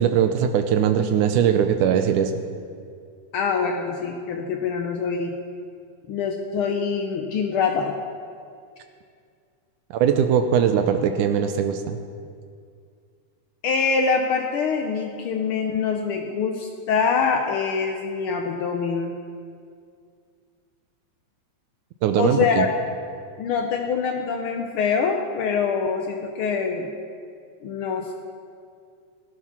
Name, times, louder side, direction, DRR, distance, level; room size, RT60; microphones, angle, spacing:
voice 1, 0.0-2.3 9.9-12.0 22.0-22.7, right 8 dB, 85° right, 7 dB, 2.2 m, -20 dB
voice 2, 3.3-5.4 6.1-8.0 13.6-19.2 22.2-22.7 23.4-26.9 27.6-28.1, left 5 dB, 70° left, 2 dB, 1.3 m, -24 dB
19.0 x 11.0 x 6.0 m, 2.3 s
omnidirectional pair, 3.5 m